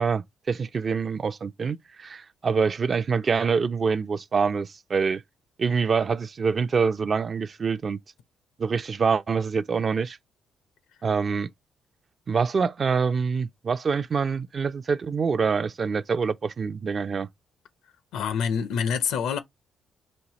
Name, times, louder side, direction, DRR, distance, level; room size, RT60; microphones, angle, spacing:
voice 1, 0.0-5.2 5.6-8.0 8.6-10.2 11.0-11.5 12.3-17.3, right 5 dB, 40° right, 0.4 m, -25 dB
voice 2, 18.1-19.4, left 7 dB, 80° left, 0.8 m, -26 dB
5.2 x 2.7 x 2.9 m
cardioid pair, 90°, 0 cm